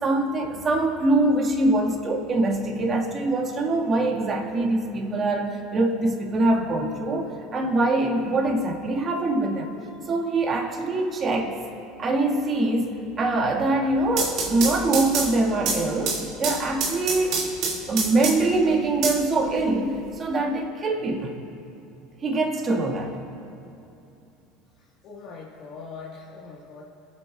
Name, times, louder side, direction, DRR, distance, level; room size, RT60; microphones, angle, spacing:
voice 1, 0.0-9.8 10.1-11.5 12.0-17.4 17.9-21.4 22.2-23.2, right 2 dB, 35° right, 0 dB, 1.7 m, -24 dB
sound 1, 13.9-18.6 19.0-20.0, right 4 dB, 60° right, 2.1 m, -28 dB
voice 2, 25.0-26.8, left 4 dB, 55° left, -5 dB, 1.5 m, -41 dB
23.5 x 7.9 x 2.4 m, 2.8 s
hypercardioid pair, 90°, 0 cm